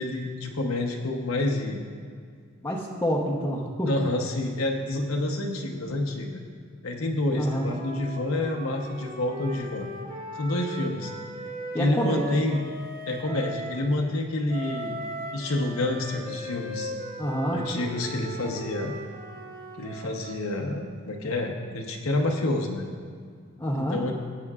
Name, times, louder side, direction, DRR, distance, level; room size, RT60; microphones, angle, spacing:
voice 1, 0.0-1.8 3.8-6.4 6.8-9.9 10.3-11.1 11.8-12.6 13.1-15.0 15.3-16.9 17.5-19.0 19.8-22.8 23.7-24.1, left 2 dB, 70° left, 1 dB, 0.9 m, -28 dB
voice 2, 2.6-3.9 7.3-7.7 11.7-12.4 17.2-17.6 23.6-24.0, equal, 10° left, -4 dB, 0.8 m, -27 dB
Wind instrument woodwind instrument, 7.4-13.8 14.5-20.5, equal, 45° right, 1.2 m, -38 dB
17.0 x 8.4 x 2.4 m, 2.1 s
head